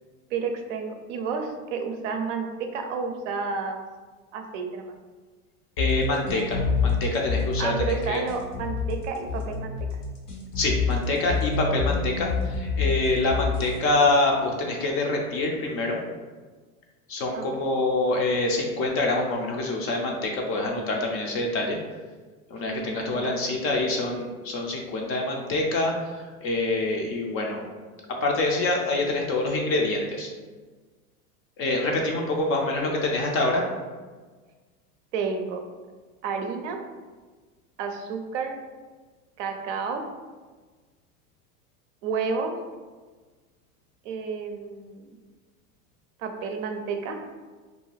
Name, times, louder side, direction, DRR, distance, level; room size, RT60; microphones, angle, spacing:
voice 1, 0.3-3.8 4.3-4.9 7.6-9.8 17.3-17.5 22.7-23.9 35.1-35.6 36.2-36.8 37.8-38.6 39.4-40.0 42.0-42.5 44.0-45.1 46.2-47.2, right 5 dB, 55° right, 5 dB, 0.5 m, -31 dB
sound 1, 5.8-13.8, left 5 dB, 85° left, 0.9 m, -27 dB
voice 2, 5.8-7.7 8.1-8.2 10.6-16.0 17.1-21.8 22.5-27.6 28.2-30.3 31.6-33.6, left 2 dB, 35° left, 1 dB, 0.4 m, -26 dB
2.5 x 2.2 x 3.1 m, 1.4 s
hypercardioid pair, 95°, 44 cm